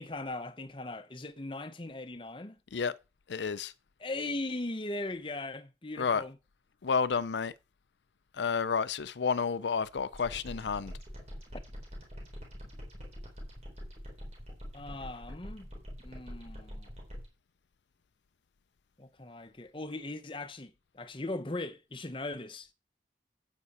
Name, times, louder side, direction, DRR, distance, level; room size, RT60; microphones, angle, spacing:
voice 1, 0.0-2.6 4.0-6.4 14.7-15.7 16.0-16.9 19.0-22.7, left 2 dB, 30° left, 0.8 m, -39 dB
voice 2, 3.3-3.7 6.0-6.2 6.8-7.5 8.4-10.9, left 5 dB, 80° left, 0.5 m, -30 dB
sound 1, 10.1-17.3, equal, 35° right, 3.9 m, -44 dB
9.8 x 8.3 x 4.3 m
head